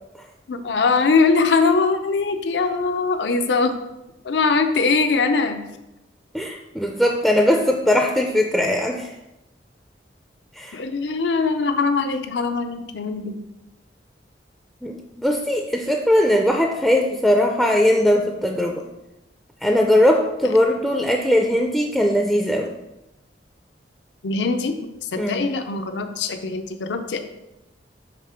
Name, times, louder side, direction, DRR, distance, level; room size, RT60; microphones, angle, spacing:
voice 1, 0.5-3.8 4.2-5.6 10.7-13.4 24.2-24.8 25.1-27.2, left 4 dB, 80° left, 7 dB, 0.5 m, -21 dB
voice 2, 6.3-9.1 10.5-10.8 14.8-18.9 19.6-22.7 25.2-25.5, left 1 dB, ahead, 1 dB, 0.3 m, -20 dB
5.2 x 3.3 x 5.6 m, 0.93 s
head